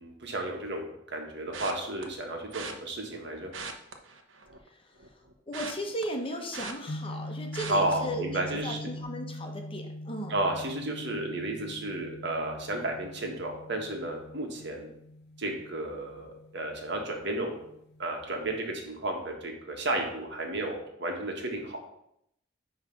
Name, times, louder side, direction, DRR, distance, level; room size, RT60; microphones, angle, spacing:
voice 1, 0.0-3.5 7.7-8.8 10.3-14.9 15.4-17.6 18.0-21.8, right 2 dB, 65° right, 2 dB, 1.6 m, -33 dB
sound 1, 1.5-2.0 2.5-2.7 3.4-4.7 5.0-7.2 7.5-7.9 8.4-8.7 9.0-9.1, right 4 dB, 85° right, 0.9 m, -40 dB
voice 2, 4.6-10.4, equal, 30° left, 3 dB, 1.0 m, -37 dB
sound 2, 6.9-18.9, left 1 dB, 60° left, 0.8 m, -43 dB
9.5 x 3.3 x 5.9 m, 0.77 s
head